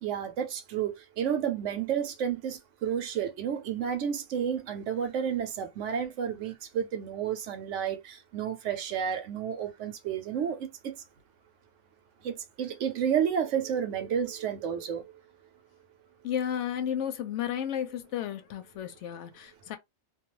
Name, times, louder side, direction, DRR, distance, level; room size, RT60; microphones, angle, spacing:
voice 1, 0.0-10.9 12.2-15.2, right 8 dB, 75° right, 0.9 m, -31 dB
voice 2, 16.2-19.8, left 9 dB, 70° left, 0.8 m, -33 dB
2.3 x 2.3 x 3.0 m
omnidirectional pair, 1.3 m